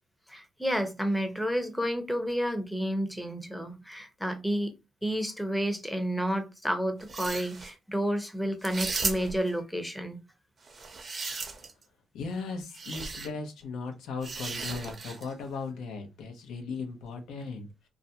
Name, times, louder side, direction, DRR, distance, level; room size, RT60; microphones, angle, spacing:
voice 1, 0.3-4.7 5.0-10.2, equal, 5° left, 0.6 m, -30 dB
sound 1, 7.0-7.7 8.6-9.5 10.7-11.8 12.7-13.3 14.2-15.3, right 4 dB, 40° right, 0.6 m, -35 dB
voice 2, 12.1-17.9, left 4 dB, 85° left, 0.7 m, -37 dB
2.4 x 2.1 x 2.7 m
cardioid pair, 90°, 0 cm